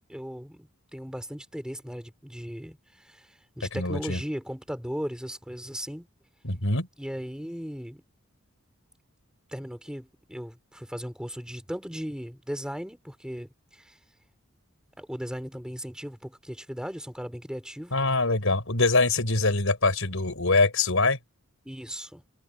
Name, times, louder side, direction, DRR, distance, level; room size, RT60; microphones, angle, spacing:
voice 1, 0.1-6.1 7.0-8.0 9.5-14.0 15.0-18.0 21.7-22.2, equal, 5° right, 3.6 m, -37 dB
voice 2, 3.7-4.2 6.4-6.9 17.9-21.2, left 3 dB, 70° left, 5.2 m, -24 dB
head